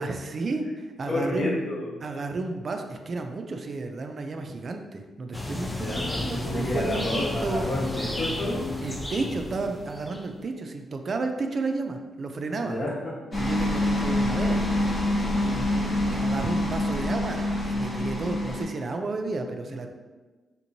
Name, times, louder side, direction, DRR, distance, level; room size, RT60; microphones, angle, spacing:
voice 1, 0.0-1.6 2.0-7.7 8.8-12.8 13.4-14.7 16.1-19.9, right 3 dB, 50° right, 5 dB, 0.3 m, -32 dB
voice 2, 1.1-1.9 5.8-8.7 12.6-13.1 14.5-14.8 15.3-15.9, left 1 dB, 65° left, -5 dB, 1.1 m, -31 dB
sound 1, 5.3-10.3, left 1 dB, 15° left, 0.5 m, -33 dB
sound 2, 13.3-18.7, left 1 dB, 35° left, 0.9 m, -26 dB
3.6 x 2.9 x 2.6 m, 1.3 s
cardioid pair, 75°, 0 cm